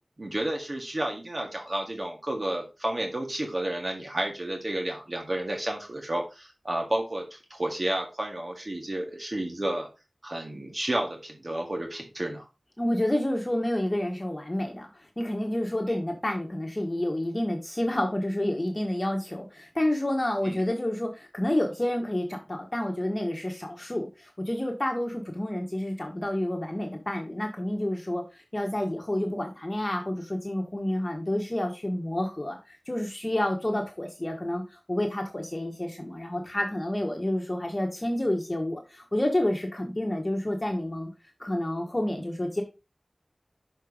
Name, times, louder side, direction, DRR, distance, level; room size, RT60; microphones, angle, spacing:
voice 1, 0.2-9.9 10.2-12.5 15.9-16.0 20.4-20.6, right 1 dB, 45° right, 2 dB, 1.8 m, -31 dB
voice 2, 12.8-41.1 41.4-42.6, left 1 dB, 30° left, 2 dB, 1.3 m, -29 dB
6.5 x 4.6 x 5.0 m, 0.28 s
wide cardioid pair, 60°, 0 cm